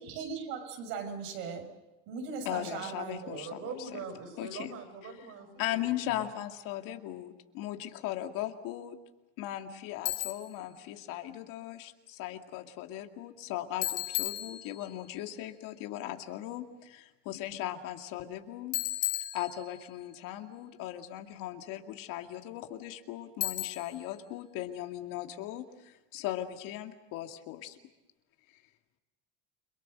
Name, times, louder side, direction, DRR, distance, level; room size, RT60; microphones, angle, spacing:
voice 1, 0.0-1.7 2.1-3.4, right 5 dB, 75° right, 4 dB, 6.6 m, -38 dB
voice 2, 2.5-4.0 4.4-4.7 5.6-9.0 9.4-18.8 19.3-27.8, left 13 dB, 65° left, 5 dB, 2.4 m, -38 dB
voice 3, 3.3-6.2, right 5 dB, 45° right, 6 dB, 6.6 m, -43 dB
Bicycle, 10.1-10.6 13.8-15.0 18.7-20.0 23.4-24.1, left 17 dB, 85° left, 3.3 m, -34 dB
29.5 x 23.0 x 6.7 m, 1.1 s
cardioid pair, 150°, 35 cm